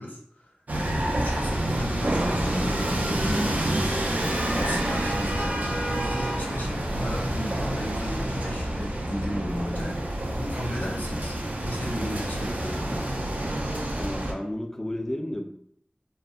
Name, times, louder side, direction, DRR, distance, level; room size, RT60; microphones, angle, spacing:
voice 1, 0.0-4.0 4.5-5.5 5.9-11.4 11.6-13.0, equal, 85° left, -2 dB, 0.6 m, -35 dB
sound 1, 0.7-14.3, right 1 dB, 65° right, 0.4 m, -28 dB
voice 2, 14.0-15.4, left 1 dB, 15° left, 4 dB, 0.3 m, -32 dB
2.6 x 2.1 x 2.3 m, 0.67 s
wide cardioid pair, 40°, 3 cm